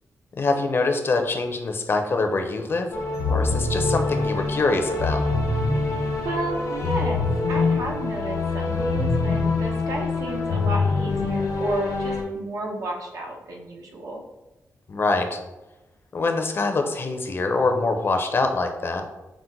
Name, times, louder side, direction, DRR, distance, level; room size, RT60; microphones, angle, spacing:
voice 1, 0.3-2.9 3.3-5.2 14.9-15.4 16.1-19.0, left 3 dB, 40° left, 5 dB, 0.5 m, -24 dB
sound 1, 2.9-12.2, left 3 dB, 90° left, 1.1 m, -24 dB
voice 2, 5.8-14.2, right 1 dB, 75° right, 0 dB, 0.9 m, -32 dB
5.8 x 2.1 x 3.8 m, 1.0 s
wide cardioid pair, 120°, 6 cm